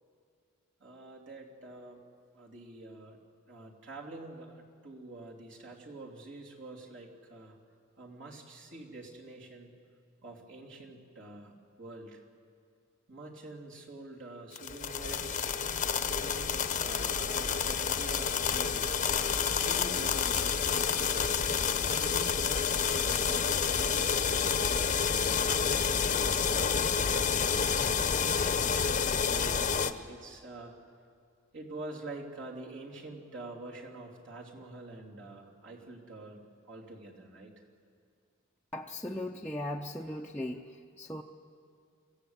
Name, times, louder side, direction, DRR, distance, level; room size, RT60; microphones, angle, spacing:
voice 1, 0.8-2.0 2.3-3.2 3.5-7.6 8.0-9.7 10.2-11.5 11.8-12.2 13.1-15.5 16.0-18.9 19.6-21.4 21.8-27.6 28.2-30.7 31.5-37.5, right 2 dB, 60° right, -2 dB, 3.4 m, -47 dB
sound 1, 14.5-29.9, left 6 dB, 35° left, 0.8 m, -29 dB
voice 2, 38.7-40.7 41.0-41.2, left 1 dB, 5° left, -2 dB, 0.6 m, -37 dB
27.5 x 16.0 x 8.3 m, 2.3 s
head